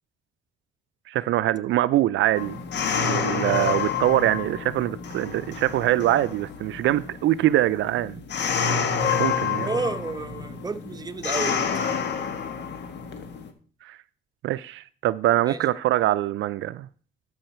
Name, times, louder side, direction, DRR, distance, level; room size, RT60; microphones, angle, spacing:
voice 1, 1.1-2.6 3.0-8.2 9.2-9.7 13.8-14.0 14.4-16.9, right 14 dB, 75° right, 0.5 m, -23 dB
sound 1, 2.4-13.5, left 6 dB, 60° left, 1.5 m, -29 dB
voice 2, 9.6-11.8 15.5-15.7, right 4 dB, 20° right, 0.9 m, -31 dB
13.0 x 5.6 x 4.4 m
cardioid pair, 90°, 20 cm